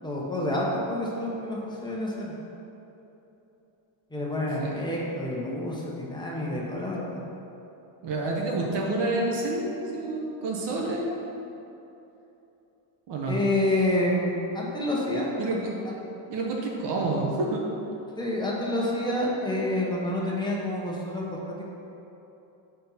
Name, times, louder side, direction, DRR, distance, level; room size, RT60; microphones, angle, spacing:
voice 1, 0.0-2.3 4.1-7.2 13.3-14.3 14.5-15.3 15.8-15.9 18.2-21.6, left 1 dB, 10° left, -4 dB, 1.1 m, -28 dB
voice 2, 8.0-11.3 13.1-13.4 15.4-15.7 16.3-17.6, right 2 dB, 60° right, -1 dB, 1.1 m, -28 dB
5.1 x 4.4 x 5.7 m, 3.0 s
cardioid pair, 135°, 47 cm